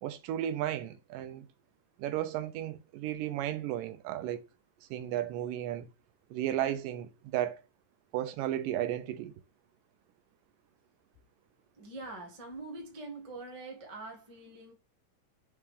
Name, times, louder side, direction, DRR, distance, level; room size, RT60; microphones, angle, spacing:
voice 1, 0.0-1.5 2.0-4.4 4.9-5.9 6.3-7.6 8.1-9.3, right 12 dB, 80° right, 2.3 m, -34 dB
voice 2, 11.8-14.7, right 2 dB, 30° right, 0.6 m, -44 dB
5.6 x 4.9 x 3.6 m
omnidirectional pair, 3.8 m